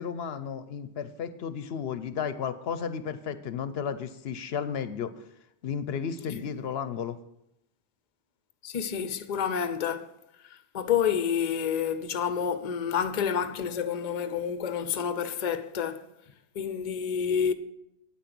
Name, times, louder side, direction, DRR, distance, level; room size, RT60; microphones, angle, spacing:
voice 1, 0.0-5.1 5.6-7.2, left 7 dB, 75° left, 0.8 m, -33 dB
voice 2, 8.6-10.1 10.5-16.0 16.5-17.5, left 8 dB, 45° left, 0.7 m, -29 dB
9.0 x 9.0 x 6.0 m
omnidirectional pair, 1.1 m